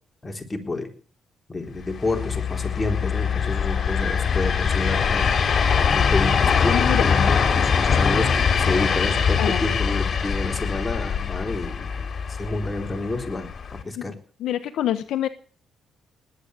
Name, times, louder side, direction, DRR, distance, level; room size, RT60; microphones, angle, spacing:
voice 1, 0.2-0.9 1.5-5.3 5.8-13.5 13.8-14.2, left 2 dB, 20° left, 4 dB, 3.9 m, -29 dB
sound 1, 1.9-13.8, left 6 dB, 50° left, 3.2 m, -22 dB
voice 2, 6.7-7.1 9.4-9.6 14.0-14.1 14.4-15.3, left 11 dB, 80° left, 11 dB, 1.2 m, -26 dB
19.5 x 8.9 x 8.1 m, 0.43 s
cardioid pair, 90°, 0 cm